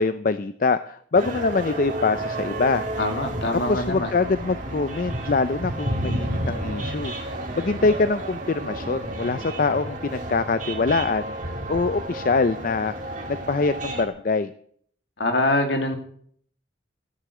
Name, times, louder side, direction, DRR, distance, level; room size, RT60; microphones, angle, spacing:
voice 1, 0.0-2.9 3.5-12.9 13.3-14.5, left 4 dB, 45° left, 12 dB, 0.5 m, -24 dB
sound 1, 1.2-14.1, right 1 dB, 40° right, 2.3 m, -31 dB
voice 2, 3.0-4.1 15.2-15.9, left 1 dB, 65° left, 4 dB, 2.5 m, -24 dB
14.5 x 8.2 x 7.8 m, 0.62 s
head